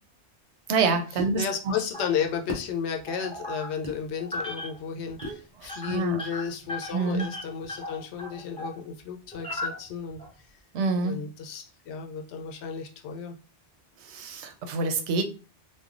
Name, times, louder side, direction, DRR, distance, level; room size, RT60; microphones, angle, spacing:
voice 1, 0.7-1.7 5.6-6.2 6.9-7.3 10.7-11.2 14.0-15.2, right 4 dB, 90° right, 7 dB, 0.9 m, -27 dB
sound 1, 1.2-1.4 2.5-2.7 3.8-4.0 5.2-5.4, left 1 dB, 50° right, 0.8 m, -35 dB
voice 2, 1.4-10.2 11.0-13.3, left 7 dB, 80° left, 3 dB, 0.9 m, -33 dB
sound 2, 1.9-2.5 3.1-3.9 4.2-4.8 5.1-5.3 5.6-8.8 9.3-10.3, left 2 dB, 5° left, 0.7 m, -37 dB
3.2 x 2.3 x 2.4 m, 0.33 s
omnidirectional pair, 1.1 m